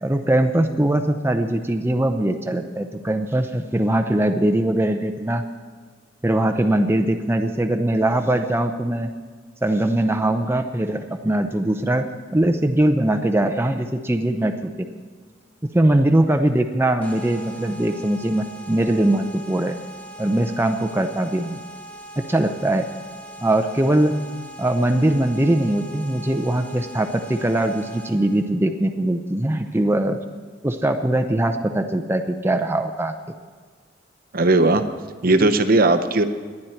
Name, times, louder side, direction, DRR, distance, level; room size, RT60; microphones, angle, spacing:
voice 1, 0.0-5.4 6.2-9.1 9.6-12.1 12.3-14.9 15.7-19.8 20.2-21.6 22.2-22.9 23.4-24.3 24.6-30.2 30.6-33.1, right 1 dB, 15° right, 6 dB, 0.6 m, -21 dB
sound 1, 17.0-28.4, right 1 dB, 10° left, 1.8 m, -41 dB
voice 2, 34.3-34.8 35.2-36.2, right 2 dB, 50° right, 9 dB, 0.8 m, -17 dB
19.5 x 11.0 x 4.4 m, 1.5 s
head